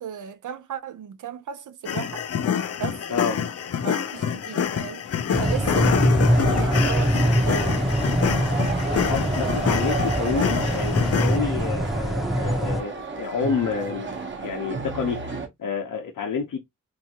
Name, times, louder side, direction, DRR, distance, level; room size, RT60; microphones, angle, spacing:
voice 1, 0.0-2.2 2.8-3.5 3.8-5.0 5.4-6.1 6.5-7.8, right 9 dB, 75° right, 0.7 m, -35 dB
sound 1, 1.9-11.4, left 8 dB, 50° left, 0.5 m, -27 dB
sound 2, 5.3-12.8, equal, ahead, 0.7 m, -23 dB
sound 3, 6.3-15.5, right 3 dB, 40° right, 0.9 m, -33 dB
voice 2, 9.1-16.6, left 5 dB, 85° left, 0.9 m, -29 dB
3.6 x 2.8 x 2.8 m
wide cardioid pair, 150°, 31 cm